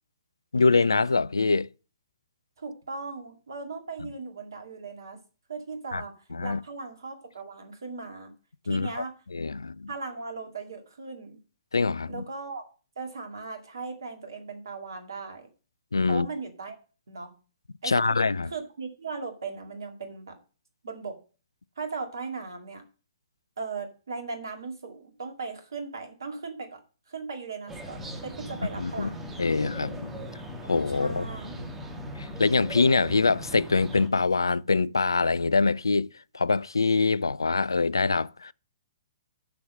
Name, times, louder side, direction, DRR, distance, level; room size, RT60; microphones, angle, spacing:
voice 1, 0.5-1.7 5.9-6.0 6.3-6.6 8.7-9.0 9.3-9.9 11.7-12.3 15.9-16.3 17.8-18.5 28.8-29.1 29.4-30.2 30.6-31.3 32.2-36.1 36.3-38.5, left 4 dB, 75° left, 0.3 m, -24 dB
voice 2, 2.6-5.2 5.5-6.1 6.4-8.3 8.7-9.2 9.9-11.4 12.1-12.6 13.0-15.5 16.1-16.8 17.1-17.3 17.8-18.1 18.5-20.4 20.8-21.2 21.8-22.8 23.6-26.8 27.1-29.3 30.9-31.7, right 4 dB, 65° right, 2.2 m, -38 dB
sound 1, 27.7-34.1, right 1 dB, 10° right, 1.6 m, -39 dB
6.8 x 6.2 x 6.4 m
figure-of-eight pair, 120°, 2 cm